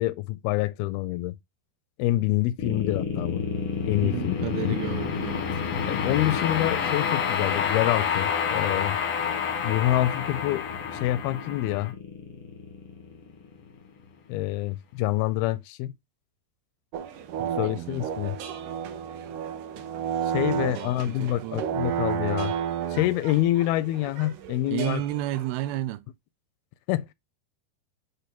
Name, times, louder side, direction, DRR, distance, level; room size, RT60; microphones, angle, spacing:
voice 1, 0.0-1.4 2.0-3.4 3.9-4.8 5.9-9.0 9.6-10.7 11.0-12.0 14.3-15.9 17.6-18.4 20.3-22.5 22.9-25.0 26.9-27.1, left 15 dB, 85° left, 2.4 m, -26 dB
sound 1, 2.6-13.8, left 6 dB, 70° left, 1.3 m, -29 dB
voice 2, 4.0-5.5 17.4-18.1 20.4-21.6 24.7-26.1, right 14 dB, 90° right, 2.6 m, -32 dB
sound 2, 16.9-25.8, right 8 dB, 70° right, 2.2 m, -32 dB
8.3 x 3.2 x 5.8 m
omnidirectional pair, 4.3 m